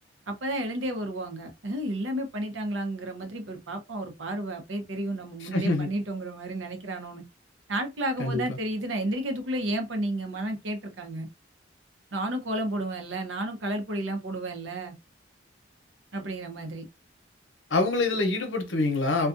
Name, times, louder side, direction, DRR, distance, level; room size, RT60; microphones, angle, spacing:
voice 1, 0.3-7.2 7.7-11.3 12.1-14.9 16.1-16.9, right 1 dB, 85° right, 0.7 m, -32 dB
voice 2, 5.4-5.9 8.2-8.6 17.7-19.3, left 2 dB, 80° left, 0.8 m, -26 dB
2.3 x 2.3 x 2.5 m
head